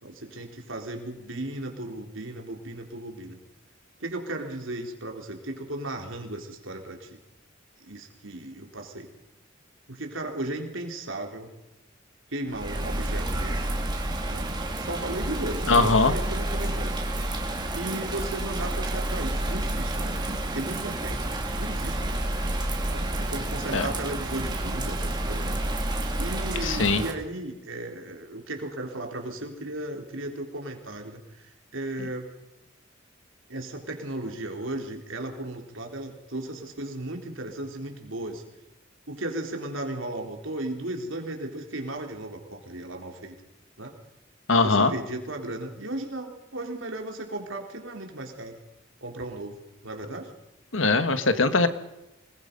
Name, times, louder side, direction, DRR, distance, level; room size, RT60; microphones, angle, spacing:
voice 1, 0.0-3.4 4.0-7.2 7.8-9.1 9.9-11.5 12.3-13.7 14.3-17.0 17.7-21.3 21.6-22.3 22.9-25.6 26.2-32.3 33.5-38.4 39.1-43.3 43.8-43.9 44.5-48.6 49.0-50.3, right 1 dB, 85° right, 2 dB, 3.9 m, -35 dB
Bird vocalization bird call bird song / Rain, 12.5-27.1, right 1 dB, 20° right, 2.5 m, -29 dB
voice 2, 15.7-16.1 23.7-23.9 26.6-27.0 32.0-32.1 44.5-44.9 50.7-51.7, left 3 dB, 80° left, 10 dB, 1.6 m, -21 dB
26.0 x 21.0 x 5.4 m, 0.96 s
head